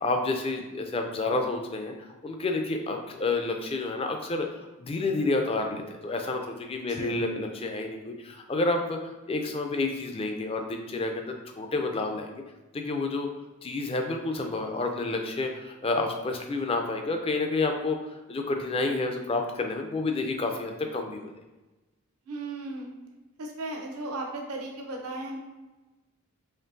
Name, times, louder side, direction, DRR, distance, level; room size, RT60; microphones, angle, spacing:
voice 1, 0.0-12.3 12.7-13.3 13.6-18.0 18.3-21.3, left 3 dB, 25° left, 4 dB, 0.4 m, -29 dB
voice 2, 22.2-22.9 23.4-25.4, right 2 dB, 85° right, 1 dB, 0.7 m, -36 dB
4.3 x 3.0 x 2.6 m, 1.1 s
head